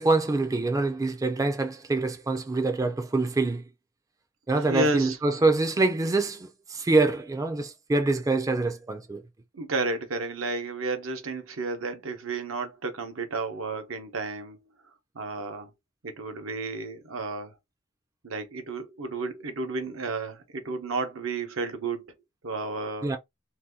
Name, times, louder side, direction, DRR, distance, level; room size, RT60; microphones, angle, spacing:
voice 1, 0.0-3.6 4.5-9.2 23.0-23.2, right 3 dB, 15° right, 0.4 m, -25 dB
voice 2, 4.6-5.2 9.5-14.6 15.1-15.7 16.0-17.5 18.2-22.1 22.4-23.1, right 3 dB, 75° right, 0.8 m, -32 dB
2.7 x 2.2 x 3.5 m
head